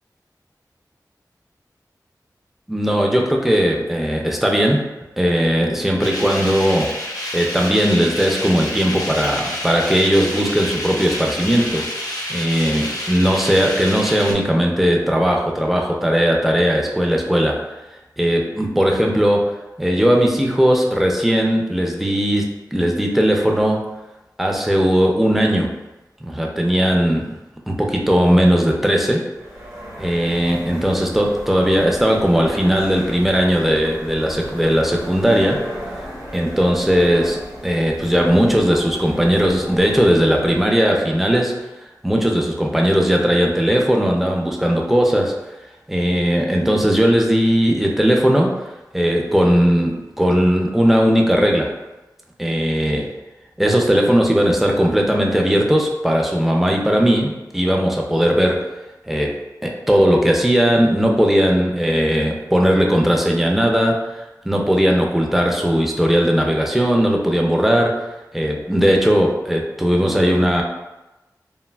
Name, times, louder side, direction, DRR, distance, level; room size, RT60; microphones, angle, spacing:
voice 1, 2.7-4.9 5.2-6.9 7.3-11.9 12.3-17.6 18.2-23.8 24.4-25.7 26.2-27.3 27.7-29.3 30.0-35.7 36.3-41.5 42.0-45.3 45.9-48.6 48.9-51.7 52.4-53.1 53.6-58.7 59.1-59.3 59.6-68.0 68.3-70.6, equal, 5° right, 0 dB, 0.4 m, -18 dB
sound 1, 6.0-14.3, left 1 dB, 60° left, 0.6 m, -28 dB
sound 2, 29.3-40.9, equal, 50° right, 0.7 m, -35 dB
3.1 x 2.3 x 2.2 m, 1.0 s
wide cardioid pair, 75°, 7 cm